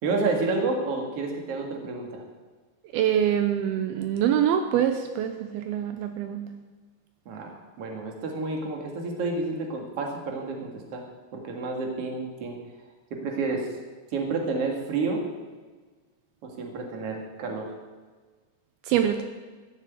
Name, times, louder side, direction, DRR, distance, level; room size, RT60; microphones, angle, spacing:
voice 1, 0.0-2.2 7.3-11.0 11.3-12.6 13.1-13.7 14.1-15.2 16.4-17.7, right 3 dB, 45° right, 1 dB, 2.6 m, -30 dB
voice 2, 2.9-6.5 18.9-19.2, right 10 dB, 80° right, 7 dB, 2.6 m, -24 dB
14.0 x 7.3 x 8.5 m, 1.4 s
omnidirectional pair, 4.5 m